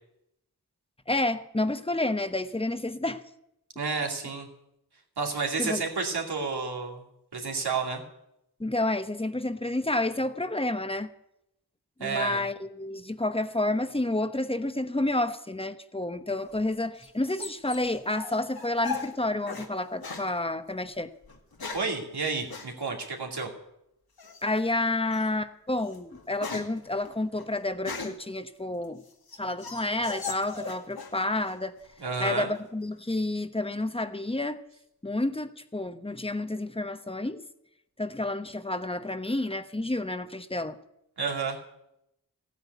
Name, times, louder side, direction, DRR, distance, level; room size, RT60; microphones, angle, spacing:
voice 1, 1.1-3.2 5.6-5.8 8.6-11.1 12.0-21.1 24.4-29.0 29.4-31.7 32.2-34.6 35.0-37.4 38.0-40.8, left 2 dB, 15° left, 10 dB, 1.0 m, -30 dB
voice 2, 3.8-4.5 5.2-7.0 7.3-8.0 12.0-12.4 21.7-23.5 32.0-32.5 41.2-41.6, right 4 dB, 90° right, 0 dB, 2.6 m, -30 dB
sound 1, 16.4-19.7 20.0-20.3 21.2-22.0 22.5-22.7 24.2-24.6 25.1-25.3 25.7-28.3 28.8-31.2 31.5-32.1, left 4 dB, 70° left, 1.9 m, -39 dB
15.5 x 9.5 x 8.1 m, 0.81 s
wide cardioid pair, 50°, 38 cm